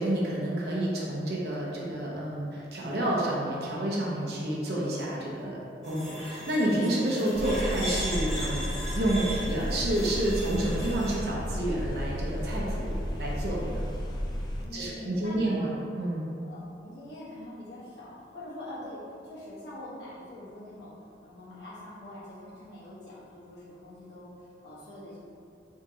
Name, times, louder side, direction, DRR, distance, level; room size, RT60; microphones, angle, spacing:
voice 1, 0.0-5.6 5.8-8.6 8.9-13.9 14.7-15.7 16.0-16.3, right 1 dB, 60° right, -5 dB, 0.8 m, -29 dB
sound 1, 5.8-11.2, equal, 5° left, 1.5 m, -38 dB
sound 2, 7.3-14.6, equal, 25° left, 0.3 m, -33 dB
voice 2, 14.6-15.7 16.4-20.9 21.2-25.2, left 1 dB, 75° left, -10 dB, 1.4 m, -44 dB
3.7 x 3.6 x 2.8 m, 2.6 s
head